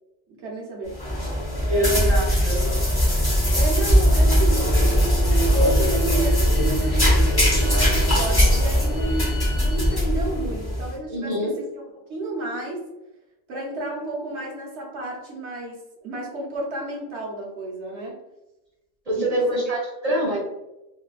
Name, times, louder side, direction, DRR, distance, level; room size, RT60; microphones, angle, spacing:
voice 1, 0.4-1.0 1.7-2.2 3.5-4.7 5.6-11.8 12.1-12.8 13.5-15.8 16.0-18.2 19.2-19.7, right 2 dB, 70° right, -2 dB, 1.1 m, -31 dB
sound 1, 0.9-10.9, equal, 20° left, 0.9 m, -20 dB
voice 2, 1.7-2.6 11.1-11.6 19.1-20.4, equal, 45° right, -3 dB, 0.5 m, -25 dB
Bowed string instrument, 4.8-10.0, left 3 dB, 55° left, 0.3 m, -44 dB
3.3 x 2.3 x 2.4 m, 0.97 s
omnidirectional pair, 1.2 m